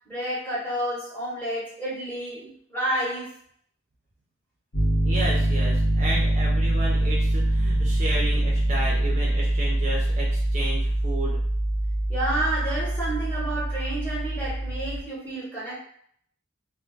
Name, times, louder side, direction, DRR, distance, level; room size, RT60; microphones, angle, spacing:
voice 1, 0.0-3.3 12.1-15.8, right 1 dB, 10° left, -8 dB, 1.0 m, -30 dB
Piano, 4.7-15.0, right 1 dB, 65° left, 0.9 m, -24 dB
voice 2, 5.0-11.4, right 1 dB, 35° right, -4 dB, 0.5 m, -32 dB
2.2 x 2.0 x 3.7 m, 0.62 s
head